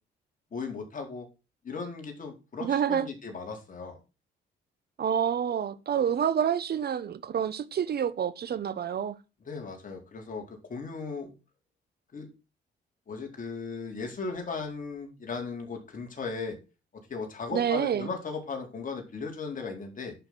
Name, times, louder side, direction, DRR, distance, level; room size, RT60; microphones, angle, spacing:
voice 1, 0.5-1.3 1.6-4.0 9.5-11.3 12.1-12.3 13.1-16.6 17.1-20.1, left 4 dB, 40° left, 4.4 m, -37 dB
voice 2, 2.6-3.1 5.0-9.2 17.5-18.1, right 8 dB, 55° right, 1.1 m, -28 dB
11.0 x 6.3 x 6.2 m
cardioid pair, 90°, 20 cm